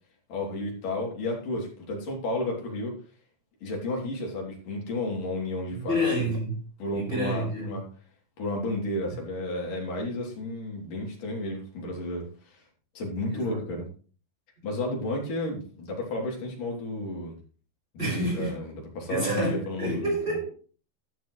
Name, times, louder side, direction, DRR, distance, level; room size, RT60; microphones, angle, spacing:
voice 1, 0.3-3.0 3.6-6.3 6.8-7.8 8.4-12.6 12.9-13.9 14.6-17.3 17.9-20.1, left 1 dB, 65° left, -1 dB, 4.7 m, -32 dB
voice 2, 5.7-6.6 6.9-7.7 13.3-13.6 14.6-14.7 18.0-18.5 19.1-20.5, equal, 15° right, -2 dB, 6.0 m, -29 dB
12.5 x 11.0 x 3.2 m, 0.41 s
omnidirectional pair, 4.1 m